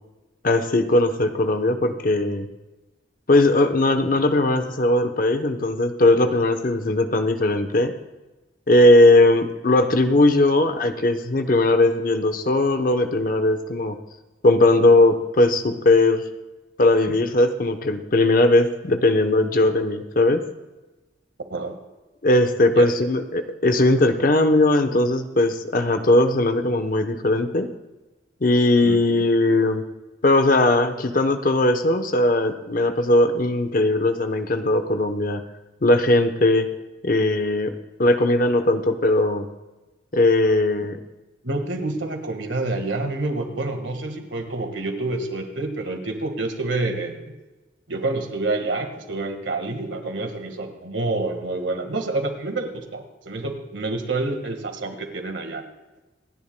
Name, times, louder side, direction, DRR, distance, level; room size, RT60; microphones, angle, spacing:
voice 1, 0.4-2.5 3.3-8.0 8.7-14.0 14.4-16.2 16.8-20.4 22.2-27.7 28.4-29.8 30.2-35.4 35.8-36.7 37.0-37.7 38.0-39.5 40.1-41.0, left 2 dB, 50° left, 8 dB, 0.9 m, -19 dB
voice 2, 22.7-23.1 28.8-29.0 41.4-47.3 47.9-55.6, right 2 dB, 90° right, 6 dB, 1.7 m, -28 dB
26.5 x 10.5 x 2.2 m, 1.1 s
head